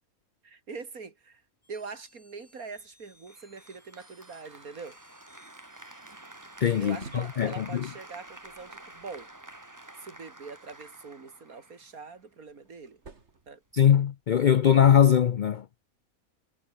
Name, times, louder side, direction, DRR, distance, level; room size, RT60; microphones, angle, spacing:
voice 1, 0.4-1.4 1.7-5.0 6.8-9.3 10.0-13.0 13.5-13.6, right 4 dB, 80° right, 3.0 m, -43 dB
sound 1, 1.6-7.4, left 1 dB, 45° left, 6.6 m, -63 dB
Applause, 3.3-12.3, right 2 dB, 15° right, 1.6 m, -49 dB
sound 2, 6.4-9.6 11.8-14.3, right 4 dB, 50° right, 2.6 m, -54 dB
voice 2, 6.6-7.9 13.7-15.6, left 9 dB, 80° left, 0.4 m, -21 dB
omnidirectional pair, 1.5 m